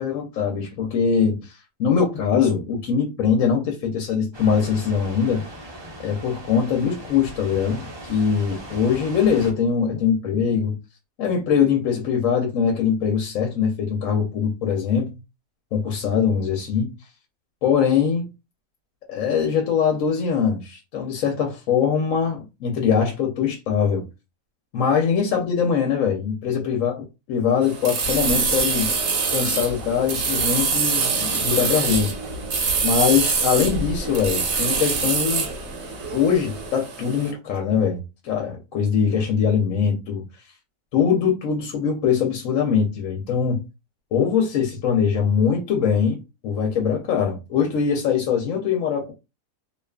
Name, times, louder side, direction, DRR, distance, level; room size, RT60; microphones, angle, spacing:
voice 1, 0.0-5.5 6.0-10.8 11.2-15.1 15.7-16.9 17.6-18.3 19.1-24.0 24.7-27.0 27.3-28.9 29.3-32.1 32.8-35.5 36.1-40.2 40.9-43.6 44.1-49.1, left 7 dB, 70° left, 0.9 m, -22 dB
sound 1, 4.3-9.5, right 1 dB, 40° right, 0.4 m, -39 dB
sound 2, 27.6-37.3, right 5 dB, 60° right, 0.8 m, -25 dB
sound 3, 28.0-36.7, equal, 85° right, 1.2 m, -35 dB
2.6 x 2.3 x 2.2 m
omnidirectional pair, 1.5 m